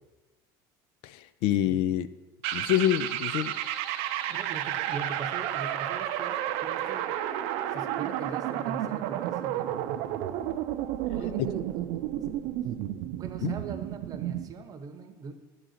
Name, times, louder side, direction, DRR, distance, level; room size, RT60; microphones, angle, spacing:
voice 1, 1.0-2.1 2.5-3.5 13.4-13.5, left 12 dB, 70° left, 15 dB, 0.4 m, -26 dB
sound 1, 2.4-14.5, right 12 dB, 75° right, 0.5 m, -31 dB
voice 2, 4.3-7.3 7.7-9.7 11.1-11.6 13.2-15.3, right 5 dB, 40° right, 8 dB, 0.8 m, -41 dB
8.8 x 3.9 x 6.4 m, 1.1 s
supercardioid pair, 115°, 10 cm